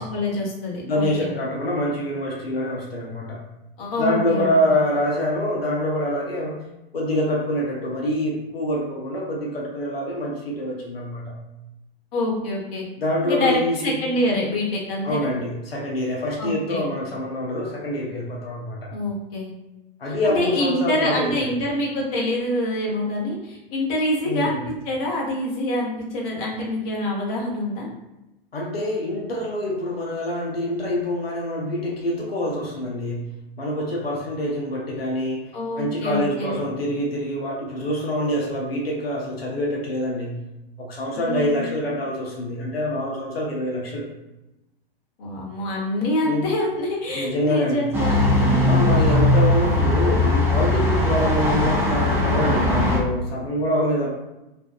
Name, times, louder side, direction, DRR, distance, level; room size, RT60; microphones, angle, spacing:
voice 1, 0.0-1.3 3.8-4.5 12.1-12.8 13.2-15.3 16.4-16.9 18.9-19.5 20.1-27.9 35.5-36.6 41.1-41.7 45.2-49.0, left 1 dB, 40° left, -3 dB, 0.8 m, -26 dB
voice 2, 0.8-3.4 4.0-6.6 6.9-11.3 13.0-13.9 15.0-18.9 20.0-21.5 24.2-24.6 28.5-33.3 33.6-40.4 40.8-44.1 46.2-46.5 47.1-47.9 48.7-54.1, left 1 dB, 90° left, -3 dB, 0.6 m, -25 dB
sound 1, 47.9-53.0, left 1 dB, 10° right, 0.4 m, -19 dB
2.5 x 2.2 x 2.3 m, 0.96 s
figure-of-eight pair, 100°, 29 cm